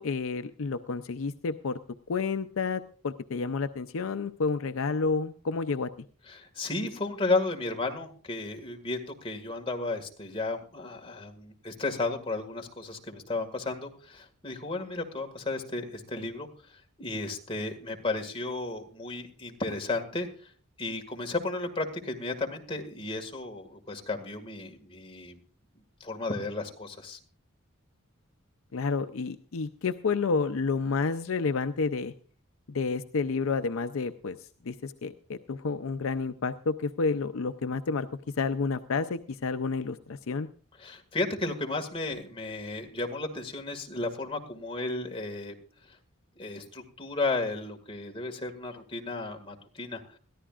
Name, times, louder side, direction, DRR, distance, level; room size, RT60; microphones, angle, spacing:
voice 1, 0.0-1.8 2.1-5.9 28.7-32.1 32.7-34.4 34.7-38.1 38.4-40.5, left 4 dB, 70° left, 10 dB, 0.5 m, -30 dB
voice 2, 6.3-20.5 20.8-25.4 26.0-27.2 40.8-45.5 45.9-46.0 46.4-50.2, left 2 dB, 25° left, 3 dB, 1.9 m, -33 dB
21.5 x 14.0 x 2.4 m, 0.42 s
head